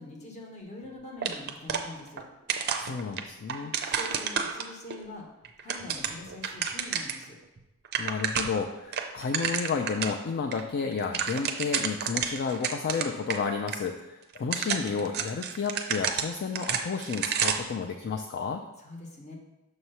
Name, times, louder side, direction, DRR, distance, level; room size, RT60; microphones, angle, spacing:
voice 1, 0.0-2.2 3.8-5.3 5.6-7.4 18.8-19.3, left 2 dB, 30° left, 0 dB, 1.1 m, -44 dB
sound 1, 1.2-2.2 2.5-5.0 5.4-7.2 7.6-7.7 7.8-8.6 8.9-10.2 10.5-10.6 10.9-13.4 13.7-13.8 14.3-17.8, right 7 dB, 45° right, 0.5 m, -31 dB
voice 2, 2.8-3.7 8.0-18.6, left 5 dB, 50° left, 4 dB, 0.4 m, -31 dB
6.5 x 3.0 x 5.5 m, 0.97 s
head